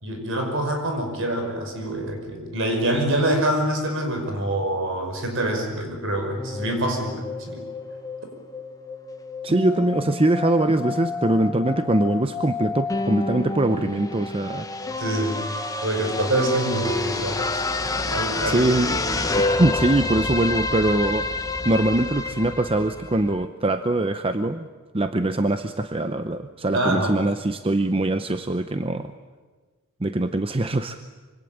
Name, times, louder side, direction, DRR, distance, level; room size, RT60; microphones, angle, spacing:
voice 1, 0.0-7.6 15.0-15.4 15.8-17.7 18.0-18.7 26.7-27.1, right 1 dB, 60° right, 4 dB, 5.6 m, -25 dB
sound 1, 6.4-23.5, left 3 dB, 15° left, 1.5 m, -29 dB
voice 2, 9.4-14.7 18.5-19.0 19.4-24.7 24.9-29.1 30.0-31.0, right 1 dB, 25° right, 9 dB, 0.8 m, -23 dB
25.5 x 24.5 x 8.9 m, 1.4 s
head